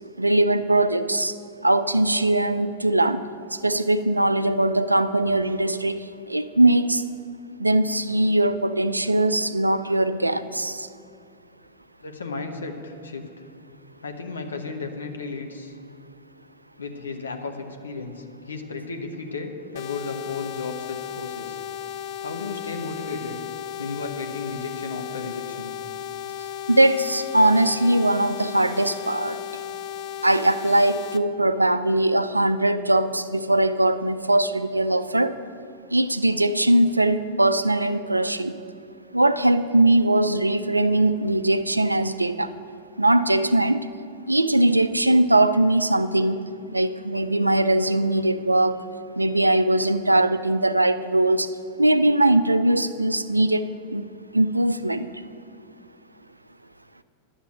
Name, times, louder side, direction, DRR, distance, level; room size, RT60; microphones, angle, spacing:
voice 1, 0.2-1.4 1.6-3.2 3.5-7.0 7.6-10.9 26.7-29.6 30.2-35.3 35.9-38.6 39.1-42.5 43.0-43.9 44.3-48.8 49.2-51.5 51.8-54.1 54.3-55.1, right 1 dB, 85° right, 13 dB, 0.4 m, -21 dB
voice 2, 12.0-13.4 14.0-15.7 16.8-21.6 22.2-23.4 23.8-25.7, left 4 dB, 75° left, 4 dB, 1.0 m, -34 dB
sound 1, 19.8-31.2, left 10 dB, 45° left, 0.6 m, -35 dB
10.5 x 7.1 x 8.9 m, 2.4 s
figure-of-eight pair, 90°, 0 cm